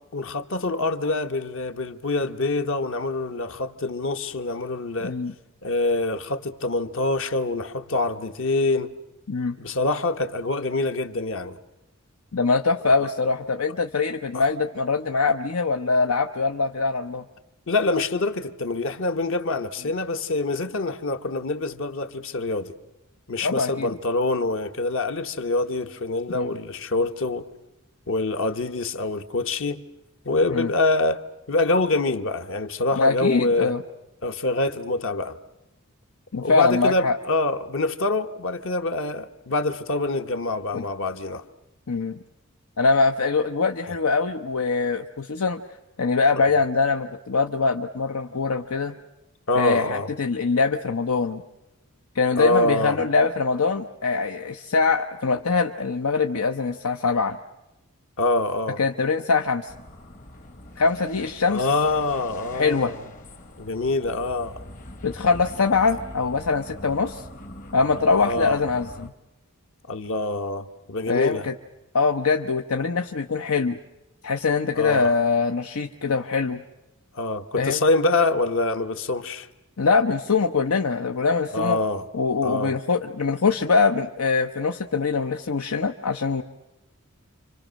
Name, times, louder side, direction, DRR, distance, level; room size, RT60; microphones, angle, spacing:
voice 1, 0.1-5.2 5.6-9.0 9.6-11.6 14.3-14.4 17.7-22.7 23.3-27.5 28.1-29.8 30.2-31.2 31.5-33.7 34.2-35.4 36.4-41.4 43.9-44.0 49.5-50.1 52.4-53.0 58.2-58.8 61.5-63.0 63.6-64.6 68.2-68.6 69.9-71.5 74.7-75.1 77.1-79.5 81.5-82.1 82.4-82.8, left 2 dB, 65° left, 1.2 m, -25 dB
voice 2, 12.3-17.2 23.4-23.9 26.3-26.6 30.5-30.7 32.9-33.8 36.3-37.2 40.7-40.8 41.9-42.2 42.8-45.6 46.0-48.9 49.5-51.4 52.1-57.4 58.8-59.7 60.8-61.7 62.5-62.9 65.0-67.2 67.7-69.1 71.1-71.5 71.9-73.8 74.2-76.6 77.5-77.8 79.8-81.8 82.1-86.4, left 4 dB, 90° left, 0.9 m, -23 dB
sound 1, 59.7-69.1, left 1 dB, 40° left, 1.1 m, -42 dB
29.0 x 25.0 x 6.4 m
head